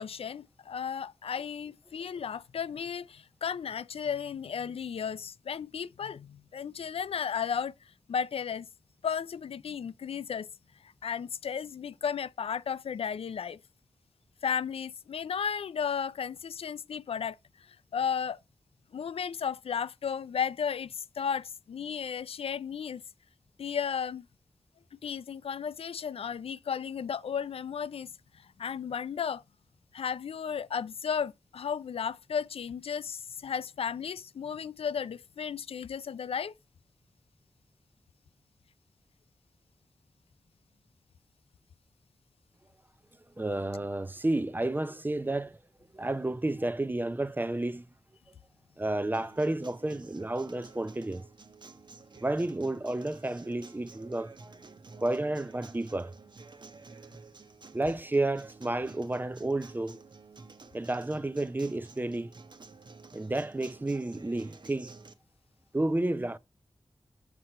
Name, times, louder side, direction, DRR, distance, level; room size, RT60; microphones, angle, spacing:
voice 1, 0.0-7.7 8.1-8.7 9.0-10.5 10.8-13.6 14.4-17.4 17.9-18.4 18.9-23.0 23.6-24.3 24.9-29.4 29.9-36.5, left 7 dB, 80° left, 0.3 m, -34 dB
voice 2, 43.4-45.6 45.9-47.9 48.8-51.2 52.2-54.6 55.0-56.1 57.7-60.0 60.7-62.3 63.1-65.0 65.7-66.4, right 2 dB, 20° right, 0.5 m, -31 dB
Acoustic guitar, 49.1-65.1, right 4 dB, 50° right, 0.9 m, -51 dB
6.5 x 6.0 x 4.2 m
wide cardioid pair, 70°, 10 cm